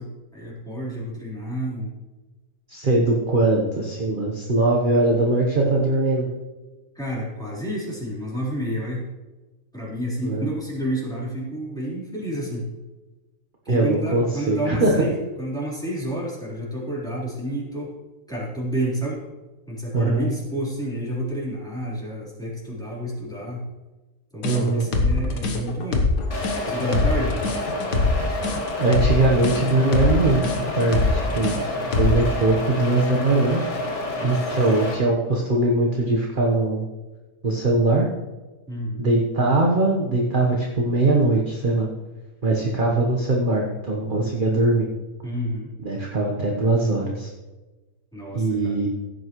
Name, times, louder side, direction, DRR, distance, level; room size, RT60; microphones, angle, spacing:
voice 1, 0.0-1.9 7.0-9.1 9.7-12.7 13.6-17.9 18.3-19.2 19.7-23.6 24.3-26.1 26.6-27.4 34.1-34.4 38.7-39.1 45.2-45.7 48.1-48.9, equal, ahead, -7 dB, 3.8 m, -30 dB
voice 2, 2.7-6.3 10.2-10.4 13.7-15.1 19.9-20.3 24.4-24.9 28.8-30.4 30.7-31.5 32.0-33.6 34.2-36.9 37.4-38.1 39.0-41.9 42.4-44.9 45.8-47.3 48.3-48.9, right 2 dB, 35° right, -2 dB, 1.2 m, -21 dB
sound 1, 24.4-32.3, left 3 dB, 75° left, 1.8 m, -23 dB
sound 2, 26.3-34.9, left 1 dB, 45° left, 2.1 m, -29 dB
16.0 x 9.0 x 3.1 m, 1.2 s
omnidirectional pair, 1.8 m